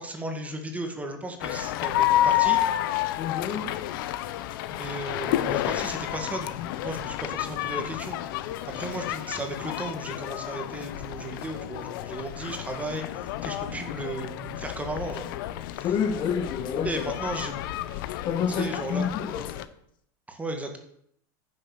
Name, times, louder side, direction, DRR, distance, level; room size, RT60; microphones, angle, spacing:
voice 1, 0.0-2.6 4.7-6.5 6.8-8.2 8.8-15.3 15.8-15.9 16.8-17.6 18.5-19.1 20.3-20.8, right 1 dB, 10° right, 4 dB, 1.9 m, -35 dB
sound 1, 1.4-19.6, left 13 dB, 75° left, 0.8 m, -30 dB
voice 2, 3.2-3.7 15.8-17.0 18.2-19.5, left 7 dB, 45° left, 7 dB, 1.6 m, -28 dB
9.8 x 6.7 x 7.1 m, 0.71 s
supercardioid pair, 125°, 11 cm